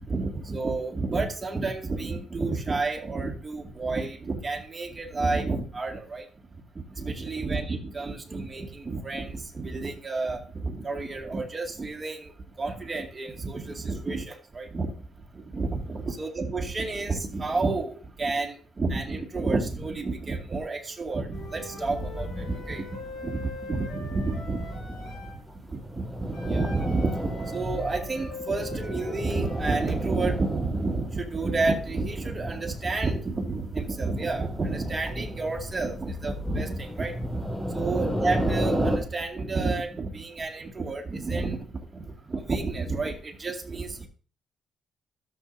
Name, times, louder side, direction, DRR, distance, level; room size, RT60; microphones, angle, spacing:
voice 1, 0.1-6.2 7.0-12.3 12.6-14.9 15.5-22.8 23.2-24.7 25.7-37.4 37.7-41.6 41.9-42.0 42.3-44.1, right 3 dB, 30° right, 2 dB, 2.3 m, -30 dB
Wind instrument woodwind instrument, 21.3-25.4 26.3-29.7, left 2 dB, 90° left, 5.1 m, -42 dB
sound 1, 21.3-39.0, equal, 5° left, 2.0 m, -34 dB
13.0 x 7.4 x 2.7 m, 0.39 s
cardioid pair, 90°, 0 cm